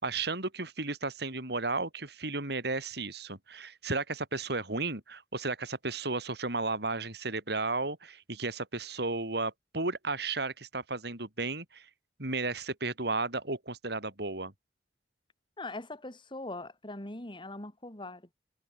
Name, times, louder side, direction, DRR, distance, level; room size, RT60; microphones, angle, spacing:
voice 1, 0.0-11.9 12.2-14.5, right 3 dB, 65° right, 4.9 m, -34 dB
voice 2, 15.6-18.3, left 2 dB, 30° left, 3.6 m, -41 dB
head